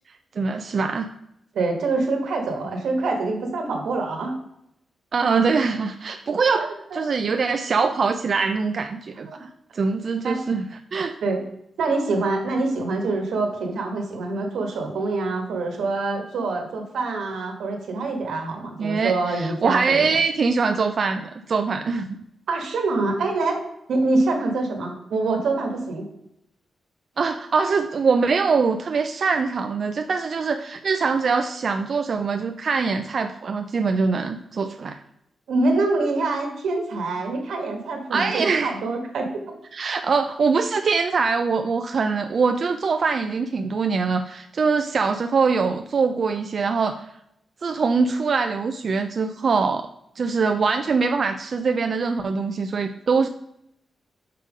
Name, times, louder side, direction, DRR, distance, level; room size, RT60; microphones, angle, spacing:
voice 1, 0.4-1.1 5.1-11.2 18.8-22.1 27.2-35.0 38.1-38.8 39.7-47.1 47.6-49.9 50.2-53.3, right 4 dB, 50° right, 6 dB, 0.3 m, -23 dB
voice 2, 1.5-4.3 6.4-7.0 9.3-9.4 10.2-10.4 11.2-11.4 11.8-20.2 22.5-23.6 23.9-26.1 35.5-39.4, right 3 dB, 85° right, 3 dB, 1.2 m, -25 dB
5.5 x 3.6 x 4.9 m, 0.79 s
wide cardioid pair, 115°, 0 cm